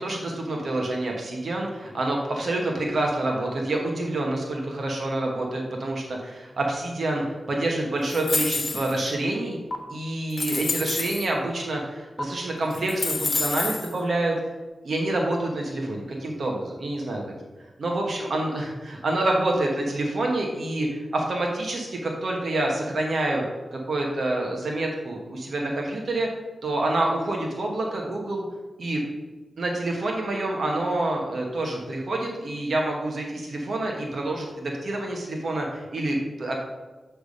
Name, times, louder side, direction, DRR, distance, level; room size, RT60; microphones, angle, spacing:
voice 1, 0.0-9.6 9.9-14.4 14.8-17.2 17.8-18.5 18.9-23.4 23.7-26.3 26.6-28.4 28.8-29.0 29.6-36.6, right 2 dB, 65° right, 0 dB, 1.1 m, -27 dB
sound 1, 8.1-9.1 9.7-9.8 10.3-11.3 12.2-12.3 12.7-13.9, left 3 dB, 55° left, 1.0 m, -28 dB
8.1 x 3.4 x 5.2 m, 1.2 s
cardioid pair, 75°, 0 cm